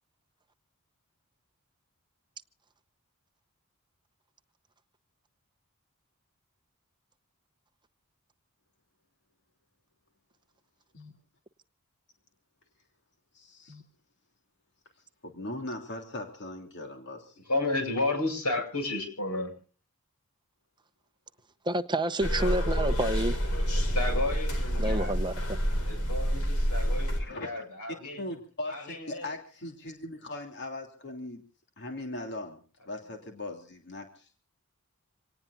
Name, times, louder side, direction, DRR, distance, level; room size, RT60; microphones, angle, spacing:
voice 1, 13.3-13.8 15.2-17.4 27.2-27.6 28.2-31.4 31.8-34.4, left 2 dB, 50° left, 3.1 m, -39 dB
voice 2, 17.5-19.5 23.7-25.2 25.8-28.2 28.7-29.3, left 2 dB, 85° left, 8.0 m, -32 dB
voice 3, 21.7-23.3 24.8-25.3, right 1 dB, 20° right, 0.9 m, -28 dB
sound 1, 22.2-27.2, equal, 70° left, 5.4 m, -28 dB
27.0 x 18.5 x 2.6 m
head